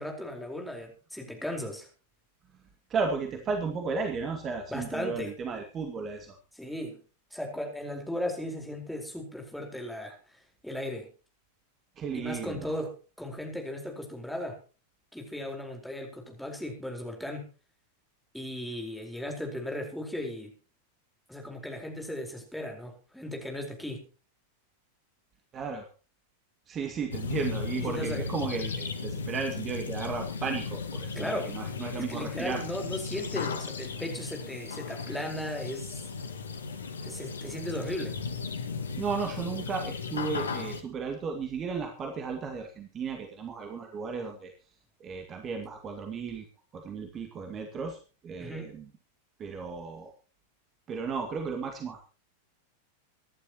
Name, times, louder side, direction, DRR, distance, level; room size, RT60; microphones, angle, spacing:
voice 1, 0.0-1.9 4.7-5.3 6.5-7.0 7.3-10.1 10.6-11.1 12.1-14.6 15.1-17.5 18.3-20.5 21.3-24.1 27.7-28.2 31.2-31.6 31.9-36.0 37.0-38.2 48.4-48.7, left 1 dB, ahead, 2 dB, 4.5 m, -36 dB
voice 2, 2.9-6.4 12.0-12.8 25.5-25.8 26.7-32.6 39.0-44.5 45.0-46.4 46.7-48.0 48.2-48.9 49.4-50.1 50.9-52.1, right 5 dB, 25° right, 4 dB, 2.3 m, -34 dB
sound 1, 27.1-40.8, left 5 dB, 70° left, 1.6 m, -36 dB
24.5 x 11.5 x 3.0 m, 0.35 s
figure-of-eight pair, 90°, 0 cm